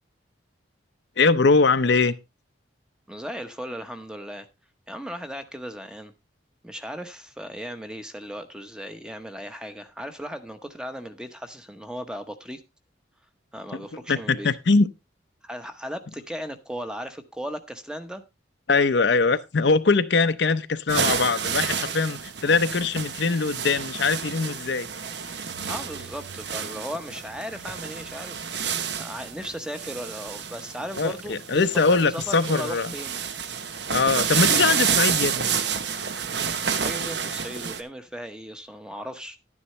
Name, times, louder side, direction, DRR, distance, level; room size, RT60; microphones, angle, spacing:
voice 1, 1.2-2.1 13.7-13.8 14.1-14.9 18.7-24.9 31.0-32.9 33.9-35.5, left 4 dB, 65° left, 0.7 m, -22 dB
voice 2, 3.1-4.5 4.9-6.1 6.6-12.6 13.5-14.5 15.4-18.2 25.7-33.2 36.8-39.4, equal, 5° right, 0.9 m, -37 dB
sound 1, 20.9-37.8, right 7 dB, 65° right, 0.9 m, -29 dB
11.5 x 9.8 x 3.1 m
head